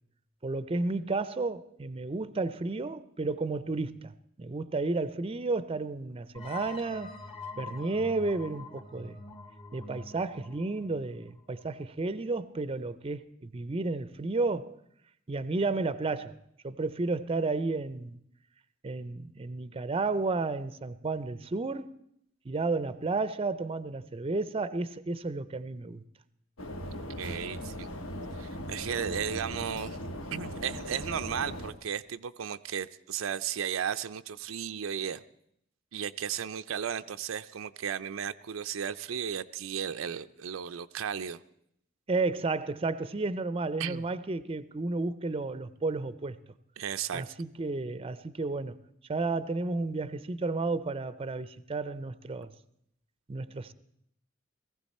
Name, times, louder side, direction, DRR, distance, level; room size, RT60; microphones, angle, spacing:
voice 1, 0.4-7.1 7.6-9.2 9.7-14.8 15.3-16.4 16.6-18.2 18.8-21.9 22.5-26.0 42.1-46.4 47.1-48.8 49.1-52.5 53.3-53.7, right 3 dB, 30° right, 0.5 m, -32 dB
sound 1, 6.3-11.8, left 3 dB, 30° left, 1.1 m, -45 dB
sound 2, 26.6-31.7, equal, 90° left, 1.4 m, -39 dB
voice 2, 26.8-27.9 28.3-30.0 30.3-35.2 35.9-41.4 43.8-44.0 46.8-47.3, right 8 dB, 90° right, 0.5 m, -35 dB
18.5 x 15.0 x 4.2 m
head